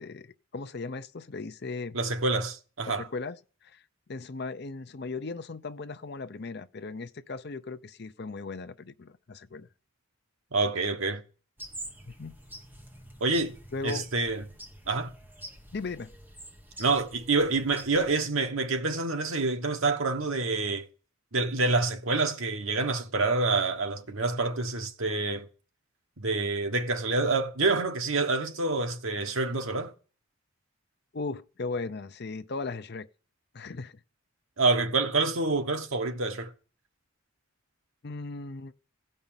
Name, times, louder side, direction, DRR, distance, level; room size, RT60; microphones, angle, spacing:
voice 1, 0.0-2.0 2.9-3.4 3.6-3.8 4.1-9.7 12.1-12.3 13.7-14.1 15.7-16.1 31.1-33.1 33.5-34.0 38.0-38.7, left 3 dB, 50° left, 0.6 m, -37 dB
voice 2, 1.9-3.0 10.5-11.2 13.2-13.5 13.8-14.4 14.9-15.1 16.8-20.8 21.3-25.5 26.2-29.9 34.6-36.5, right 3 dB, 75° right, 1.3 m, -27 dB
sound 1, 11.6-18.2, right 1 dB, 10° right, 1.6 m, -47 dB
16.0 x 5.5 x 8.9 m
head